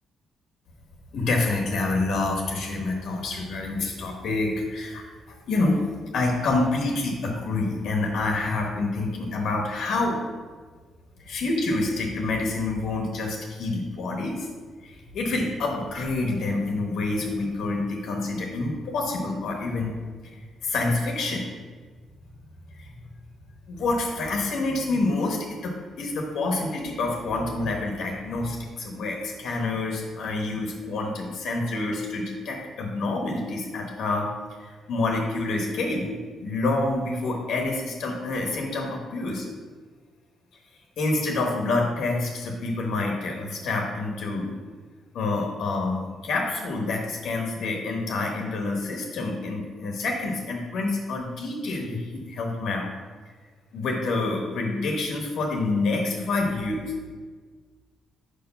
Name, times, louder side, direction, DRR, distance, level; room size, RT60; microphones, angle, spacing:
voice 1, 1.1-5.0 5.5-5.8 6.1-10.2 11.3-14.5 14.8-19.9 20.2-21.5 22.8-22.9 23.7-34.3 34.6-39.5 41.0-44.5 45.1-52.8 53.7-56.8, left 2 dB, 75° left, 1 dB, 1.1 m, -27 dB
4.9 x 4.6 x 5.6 m, 1.5 s
cardioid pair, 90°, 0 cm